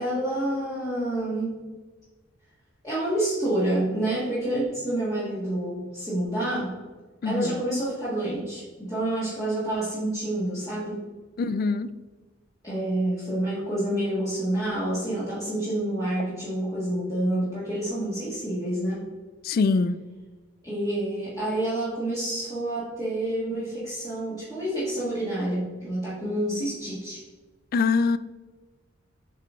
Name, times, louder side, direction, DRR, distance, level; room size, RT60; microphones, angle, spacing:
voice 1, 0.0-1.6 2.8-6.8 7.2-11.0 12.6-19.0 20.6-27.2, right 1 dB, 15° left, -10 dB, 1.7 m, -28 dB
voice 2, 7.2-7.6 11.4-11.9 19.4-20.0 27.7-28.2, left 4 dB, 50° left, 14 dB, 0.3 m, -23 dB
7.5 x 3.8 x 3.6 m, 1.3 s
head